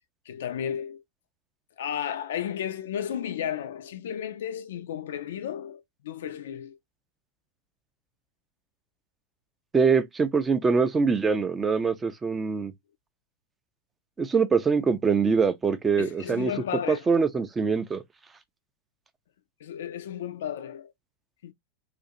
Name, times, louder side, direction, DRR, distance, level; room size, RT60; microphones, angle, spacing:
voice 1, 0.3-1.0 1.8-6.8 16.0-17.0 19.6-20.9 21.4-21.5, left 9 dB, 60° left, 0.3 m, -33 dB
voice 2, 9.7-12.7 14.2-16.5 16.9-18.0, right 5 dB, 15° right, 0.4 m, -23 dB
2.5 x 2.4 x 2.7 m
figure-of-eight pair, 90°, 0 cm